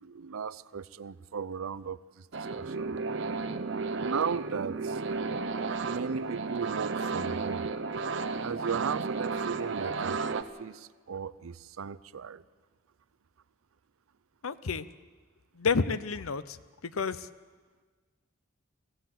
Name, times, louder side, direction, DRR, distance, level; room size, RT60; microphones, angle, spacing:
voice 1, 0.0-2.3 2.5-2.9 4.0-5.0 5.8-7.7 8.4-12.4, right 6 dB, 80° right, 17 dB, 0.5 m, -36 dB
sound 1, 2.3-10.4, right 4 dB, 60° right, 0.9 m, -33 dB
voice 2, 14.4-14.9 15.5-16.6 16.8-17.3, left 4 dB, 80° left, 15 dB, 0.7 m, -30 dB
23.5 x 15.5 x 7.8 m, 1.5 s
head